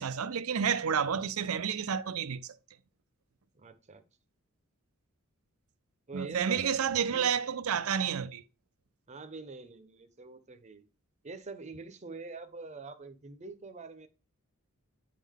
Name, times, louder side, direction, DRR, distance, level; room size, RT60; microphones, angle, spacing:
voice 1, 0.0-2.4 6.1-8.4, right 7 dB, 85° right, 0.5 m, -30 dB
voice 2, 3.5-4.0 6.1-7.3 9.1-10.9 11.2-14.1, right 3 dB, 35° right, 0.7 m, -45 dB
9.2 x 3.7 x 3.5 m
head